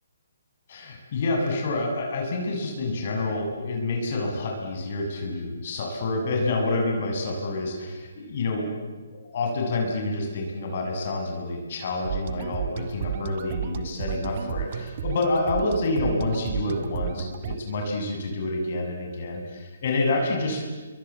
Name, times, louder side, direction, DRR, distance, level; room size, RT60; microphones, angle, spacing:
voice 1, 0.7-8.7 9.1-20.6, left 2 dB, 50° left, 1 dB, 7.5 m, -28 dB
sound 1, 12.0-17.6, right 9 dB, 40° right, 1.9 m, -32 dB
29.0 x 24.0 x 8.4 m, 1.3 s
hypercardioid pair, 150°, 0 cm